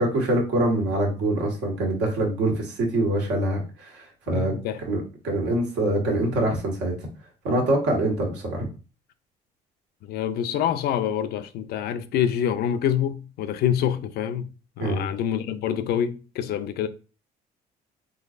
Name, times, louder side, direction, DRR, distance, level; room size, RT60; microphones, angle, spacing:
voice 1, 0.0-4.5 4.9-6.9 7.4-8.7 14.8-15.1, right 1 dB, 85° right, 1.6 m, -24 dB
voice 2, 4.3-4.8 10.0-14.5 14.8-16.9, left 9 dB, 70° left, 0.5 m, -26 dB
3.8 x 3.2 x 2.5 m
cardioid pair, 110°, 17 cm